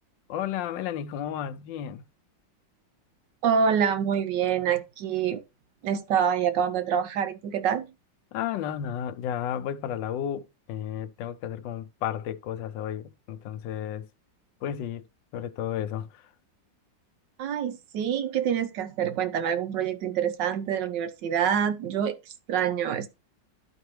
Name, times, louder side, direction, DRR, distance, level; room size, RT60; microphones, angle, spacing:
voice 1, 0.3-2.0 8.3-14.1 14.6-15.0 15.3-16.1, left 10 dB, 80° left, 1.3 m, -32 dB
voice 2, 3.4-5.4 5.8-7.9 17.4-23.1, right 8 dB, 75° right, 1.5 m, -26 dB
11.5 x 4.5 x 3.2 m
omnidirectional pair, 2.0 m